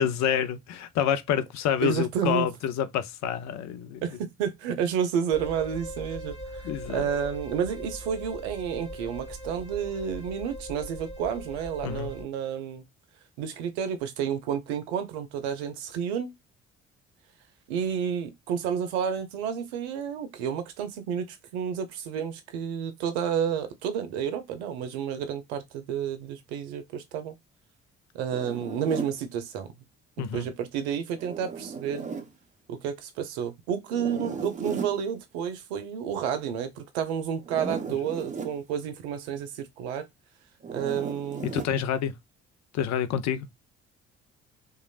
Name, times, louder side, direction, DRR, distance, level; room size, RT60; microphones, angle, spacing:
voice 1, 0.0-4.0 6.6-7.1 11.8-12.1 30.2-30.4 41.4-42.1 42.7-43.5, left 9 dB, 60° left, 0.6 m, -28 dB
voice 2, 1.8-2.5 4.0-12.8 13.4-16.3 17.7-27.3 28.1-29.7 30.2-32.1 32.7-40.0 40.7-41.5, right 8 dB, 80° right, 0.7 m, -30 dB
sound 1, 5.3-12.2, equal, 20° left, 1.4 m, -40 dB
Zipper (clothing), 28.3-29.2 31.1-32.3 33.9-35.0 37.4-38.6 40.6-41.7, right 5 dB, 25° right, 0.8 m, -36 dB
3.0 x 2.4 x 2.3 m
hypercardioid pair, 50°, 32 cm